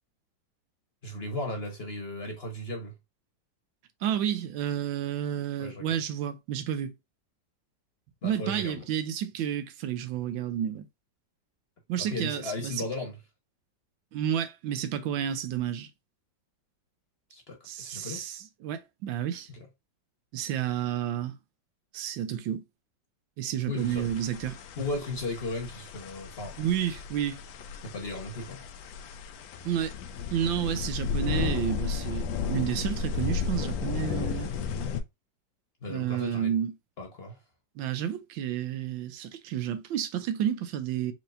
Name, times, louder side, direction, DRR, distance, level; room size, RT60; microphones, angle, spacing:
voice 1, 1.0-2.9 5.6-6.0 8.2-8.8 11.9-13.1 17.3-18.2 19.5-19.7 23.6-24.0 24.8-26.5 27.8-28.6 35.8-36.5 37.0-37.4, left 2 dB, 40° left, 1.0 m, -36 dB
voice 2, 4.0-6.9 8.2-10.8 11.9-12.8 14.1-15.9 17.6-19.5 20.3-21.4 21.9-22.6 23.4-24.6 26.6-27.4 29.6-29.9 30.3-34.5 35.9-36.7 37.8-41.1, right 10 dB, 90° right, 1.4 m, -31 dB
sound 1, 23.8-35.0, left 6 dB, 85° left, 1.4 m, -34 dB
4.5 x 3.0 x 2.5 m
omnidirectional pair, 2.0 m